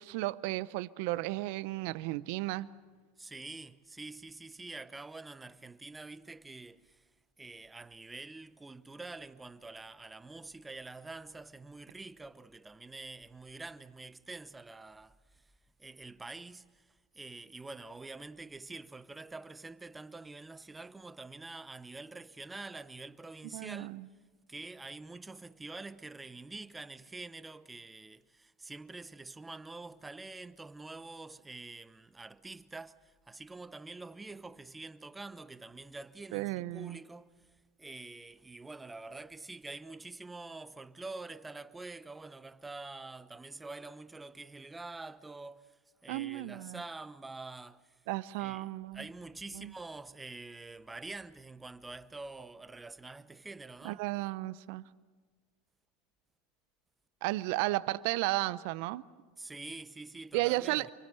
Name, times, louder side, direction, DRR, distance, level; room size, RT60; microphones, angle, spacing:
voice 1, 0.0-2.7 23.5-24.1 36.3-37.0 46.1-46.8 48.1-49.0 49.5-49.7 53.8-54.8 57.2-59.0 60.3-60.9, right 19 dB, 65° right, 0.6 m, -34 dB
voice 2, 3.2-7.0 7.4-15.5 15.8-16.9 17.1-24.0 24.5-37.4 37.8-48.0 48.4-54.0 59.4-60.9, right 3 dB, 15° right, 0.9 m, -46 dB
28.0 x 23.5 x 6.7 m
hypercardioid pair, 90°, 0 cm